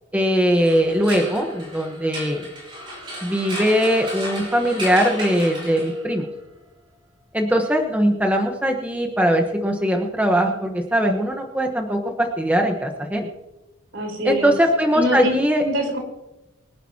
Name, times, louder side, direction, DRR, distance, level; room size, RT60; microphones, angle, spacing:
voice 1, 0.1-2.4 3.2-6.3 7.3-13.3 14.2-15.6, equal, 10° right, 2 dB, 1.1 m, -20 dB
sound 1, 0.5-6.2, equal, 25° right, 4.0 m, -34 dB
voice 2, 13.9-14.6 14.9-15.3 15.6-16.0, equal, 60° right, 1 dB, 4.4 m, -24 dB
24.0 x 11.0 x 2.9 m, 1.0 s
head